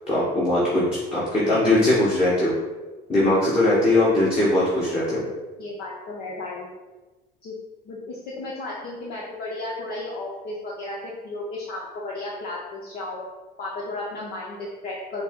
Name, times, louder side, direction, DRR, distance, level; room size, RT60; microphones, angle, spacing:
voice 1, 0.1-0.8 1.1-2.5 3.1-5.2, left 1 dB, 30° left, -8 dB, 1.3 m, -20 dB
voice 2, 5.6-6.7 7.4-7.5 7.8-13.2 13.6-15.2, left 2 dB, 55° left, -4 dB, 0.8 m, -34 dB
5.3 x 2.0 x 3.6 m, 1.2 s
supercardioid pair, 90°, 19 cm